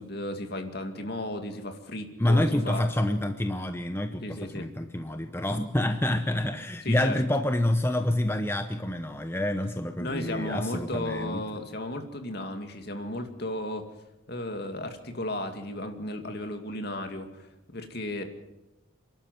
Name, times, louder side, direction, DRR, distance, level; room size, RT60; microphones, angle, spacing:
voice 1, 0.0-2.8 4.2-4.7 5.5-5.6 6.8-7.2 10.0-13.9 14.3-18.2, left 1 dB, 55° left, 5 dB, 2.4 m, -34 dB
voice 2, 2.2-11.4, left 1 dB, 10° left, 7 dB, 0.8 m, -27 dB
27.5 x 12.0 x 7.9 m, 0.97 s
head